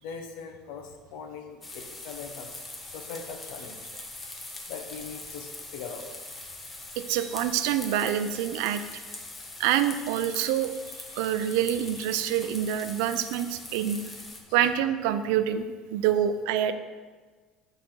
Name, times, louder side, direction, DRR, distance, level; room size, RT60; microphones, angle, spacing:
voice 1, 0.0-2.6 2.9-3.8 4.7-6.1 14.5-14.6, left 6 dB, 80° left, 4 dB, 0.8 m, -41 dB
sound 1, 1.6-14.4, left 2 dB, 20° left, 0.9 m, -42 dB
voice 2, 7.0-9.0 9.6-10.7 11.2-14.0 14.5-16.7, right 10 dB, 85° right, 10 dB, 0.4 m, -26 dB
8.9 x 4.1 x 3.8 m, 1.4 s
cardioid pair, 135°, 0 cm